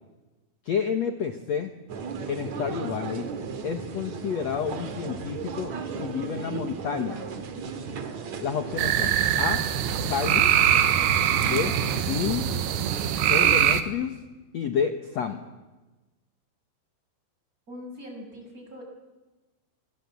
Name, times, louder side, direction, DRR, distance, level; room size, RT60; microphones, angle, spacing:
voice 1, 0.6-1.7 2.3-3.3 3.6-7.2 8.4-9.6 10.1-10.5 11.4-11.7 12.1-12.5 13.3-14.2 14.5-15.4, left 7 dB, 70° left, 7 dB, 1.6 m, -29 dB
sound 1, 1.9-13.6, right 5 dB, 50° right, 2.7 m, -36 dB
sound 2, 8.8-13.8, right 10 dB, 75° right, 3.2 m, -23 dB
voice 2, 17.7-18.8, left 1 dB, 20° right, 2 dB, 6.7 m, -42 dB
27.0 x 25.5 x 8.4 m, 1.1 s
omnidirectional pair, 5.1 m